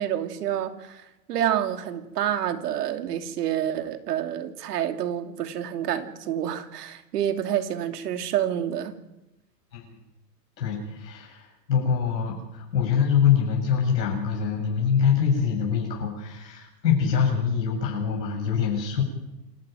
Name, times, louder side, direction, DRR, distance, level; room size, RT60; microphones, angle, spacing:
voice 1, 0.0-8.9, right 10 dB, 65° right, 8 dB, 2.8 m, -28 dB
voice 2, 10.6-19.0, left 7 dB, 90° left, -1 dB, 7.2 m, -24 dB
27.0 x 12.5 x 9.3 m, 0.96 s
supercardioid pair, 160°, 50 cm